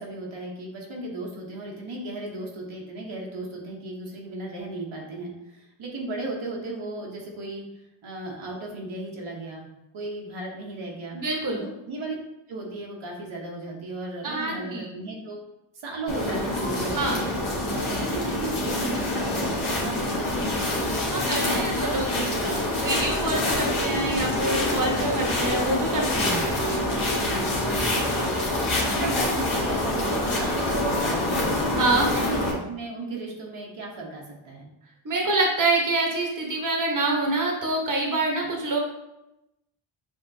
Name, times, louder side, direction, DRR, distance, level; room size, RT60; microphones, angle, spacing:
voice 1, 0.0-9.7 9.9-11.2 11.5-12.1 12.5-15.4 15.7-17.2 17.6-23.1 23.8-24.2 27.6-28.4 28.8-31.6 32.0-34.7, right 2 dB, 75° right, -2 dB, 1.0 m, -35 dB
voice 2, 11.1-11.6 14.2-14.9 16.9-17.2 21.1-22.4 22.8-26.4 31.8-32.1 35.0-38.8, right 2 dB, 40° right, 0 dB, 1.0 m, -26 dB
sound 1, 16.1-32.5, left 1 dB, 75° left, 1.3 m, -26 dB
6.3 x 2.8 x 2.7 m, 0.89 s
wide cardioid pair, 80°, 49 cm